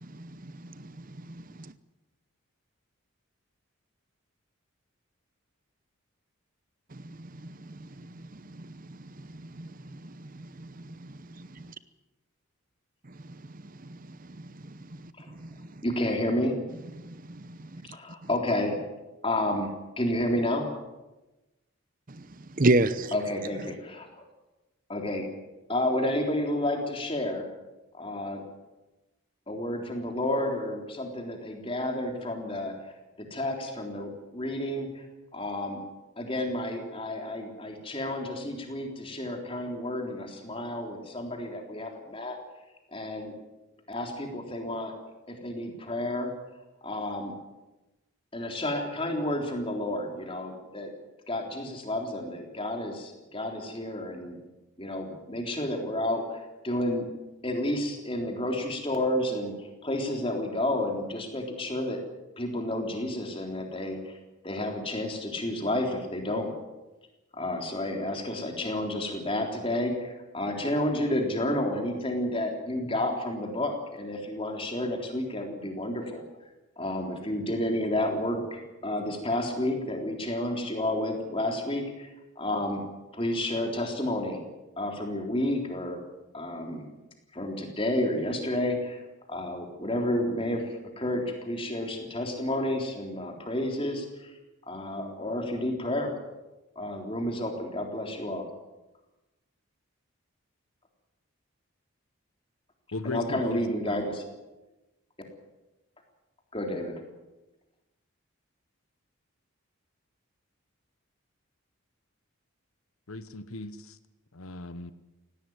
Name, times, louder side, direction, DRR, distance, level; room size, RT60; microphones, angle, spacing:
voice 1, 0.0-1.7 6.9-11.5 13.0-15.8 17.0-17.9 22.1-23.1 23.7-23.8, right 2 dB, 40° right, 14 dB, 0.8 m, -33 dB
voice 2, 15.8-16.6 17.9-18.8 19.2-19.7 20.0-20.7 23.1-24.1 24.9-25.3 25.7-27.5 27.9-28.4 29.5-32.7 33.2-35.0 35.3-35.8 36.2-42.4 42.9-43.4 43.9-44.9 45.3-46.3 46.8-47.4 48.3-50.9 51.3-54.4 54.8-57.1 57.4-62.0 62.4-64.1 64.4-66.5 67.3-76.2 76.8-82.8 83.1-84.4 84.8-86.0 86.3-86.8 87.3-89.0 89.3-94.3 94.7-96.1 96.8-98.5 103.0-104.2 106.5-106.9, left 1 dB, 25° left, 2 dB, 3.6 m, -30 dB
voice 3, 102.9-104.1 113.1-114.0 114.3-114.9, left 3 dB, 80° left, 12 dB, 1.1 m, -37 dB
18.0 x 17.5 x 9.5 m, 1.1 s
head